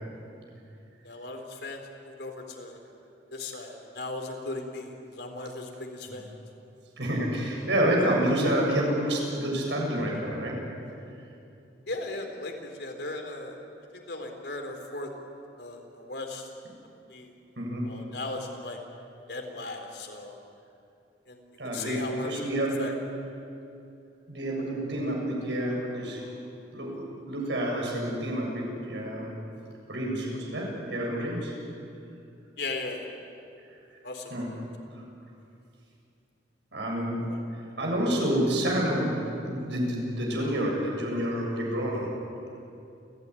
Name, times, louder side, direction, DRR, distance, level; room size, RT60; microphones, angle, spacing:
voice 1, 1.0-2.8 3.3-6.4 7.6-7.7 11.9-13.6 13.9-15.1 15.6-16.5 17.1-17.3 17.8-18.8 19.3-20.3 21.3-21.4 21.7-22.9 32.6-33.1 34.0-34.3 37.3-37.4, left 2 dB, 70° left, 3 dB, 3.8 m, -37 dB
voice 2, 7.0-10.6 17.6-17.9 21.6-22.8 24.3-26.2 26.7-29.3 29.9-31.5 34.3-34.5 36.7-37.3 37.8-42.1, right 1 dB, 85° right, -1 dB, 7.5 m, -28 dB
29.5 x 16.0 x 9.9 m, 2.6 s
head